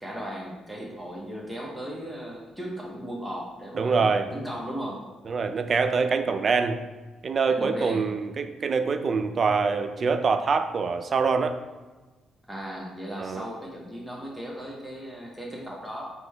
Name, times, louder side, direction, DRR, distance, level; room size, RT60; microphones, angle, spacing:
voice 1, 0.0-5.0 7.5-8.1 12.5-16.1, equal, ahead, -4 dB, 0.8 m, -36 dB
voice 2, 3.7-4.3 5.3-6.8 7.2-11.6 13.2-13.4, right 5 dB, 45° right, 9 dB, 0.3 m, -25 dB
4.4 x 3.0 x 3.2 m, 1.2 s
cardioid pair, 90°, 0 cm